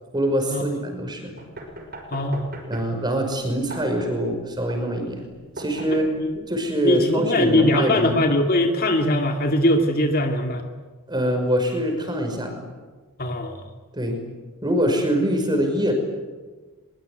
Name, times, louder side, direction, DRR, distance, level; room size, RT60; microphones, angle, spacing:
voice 1, 0.1-1.3 2.7-5.3 5.6-6.1 6.5-8.3 11.1-12.6 13.9-14.2 14.6-15.9, equal, 20° right, 4 dB, 5.6 m, -24 dB
sound 1, 1.4-6.4, right 1 dB, 45° right, 5.9 m, -40 dB
voice 2, 2.1-2.5 6.8-10.6 13.2-13.6, left 1 dB, 40° left, 3 dB, 2.3 m, -21 dB
23.5 x 23.0 x 9.6 m, 1.4 s
head